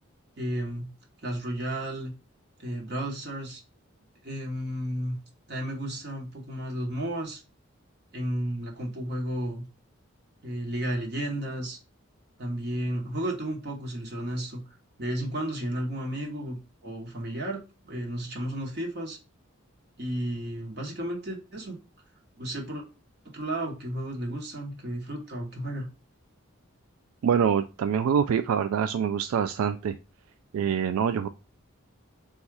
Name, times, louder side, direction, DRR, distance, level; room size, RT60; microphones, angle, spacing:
voice 1, 0.4-0.9 1.2-2.1 2.6-3.6 4.2-5.2 5.5-7.4 8.1-9.6 10.4-11.8 12.4-14.6 15.0-19.2 20.0-21.8 22.4-22.8 23.2-25.9, right 1 dB, 50° right, 0 dB, 1.0 m, -33 dB
voice 2, 27.2-30.0 30.5-31.3, right 7 dB, 90° right, 8 dB, 0.3 m, -25 dB
4.1 x 2.4 x 4.6 m, 0.30 s
head